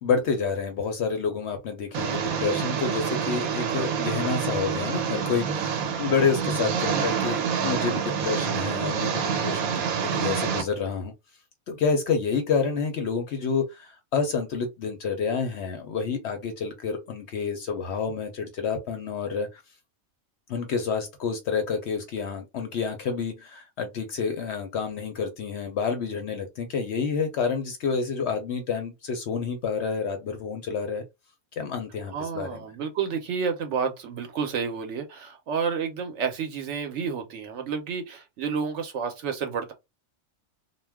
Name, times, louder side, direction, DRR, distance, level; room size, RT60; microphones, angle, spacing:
voice 1, 0.0-9.7 10.1-11.1 11.7-19.6 20.5-31.0 31.6-32.6, left 5 dB, 65° left, 0.7 m, -28 dB
Engine, 1.9-10.6, right 7 dB, 90° right, 1.1 m, -27 dB
voice 2, 32.1-39.7, right 6 dB, 65° right, 0.8 m, -30 dB
2.3 x 2.1 x 3.3 m
omnidirectional pair, 1.5 m